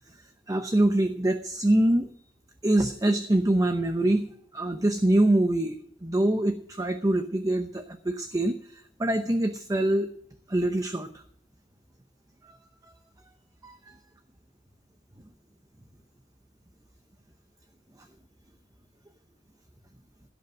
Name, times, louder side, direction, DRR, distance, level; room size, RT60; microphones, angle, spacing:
voice 1, 0.5-2.1 2.6-4.3 4.5-8.6 9.0-10.1 10.5-11.1 13.6-13.8, right 1 dB, 20° right, 8 dB, 0.8 m, -24 dB
16.5 x 5.6 x 8.9 m, 0.67 s
head